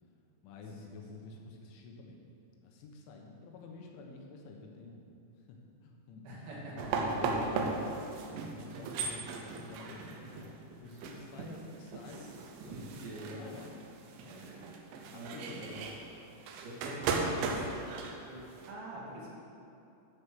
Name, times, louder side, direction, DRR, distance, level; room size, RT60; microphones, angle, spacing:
voice 1, 0.4-2.2 2.6-5.1 5.5-12.3 12.6-13.7 14.2-14.5 15.1-16.0 16.8-17.7, left 3 dB, 75° left, 1 dB, 3.5 m, -50 dB
voice 2, 6.2-7.8 10.0-10.4 12.1-13.6 14.3-15.8 16.4-17.4 18.3-19.3, right 1 dB, 50° right, -6 dB, 3.4 m, -46 dB
sound 1, 6.8-18.7, right 4 dB, 80° right, 3.3 m, -37 dB
14.0 x 5.2 x 6.9 m, 2.7 s
omnidirectional pair, 5.7 m